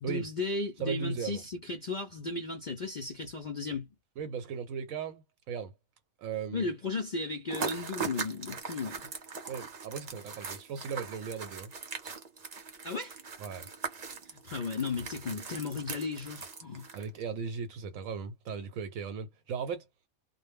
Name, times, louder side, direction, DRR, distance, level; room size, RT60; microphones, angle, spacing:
voice 1, 0.0-3.9 6.5-9.1 12.8-13.2 14.3-16.9, left 3 dB, 60° left, 0.4 m, -35 dB
voice 2, 0.8-1.4 4.2-5.7 6.2-6.7 9.5-11.7 13.4-13.7 16.9-19.9, right 6 dB, 85° right, 1.0 m, -37 dB
sound 1, 7.5-17.2, right 5 dB, 45° right, 0.6 m, -40 dB
2.2 x 2.0 x 3.3 m
omnidirectional pair, 1.4 m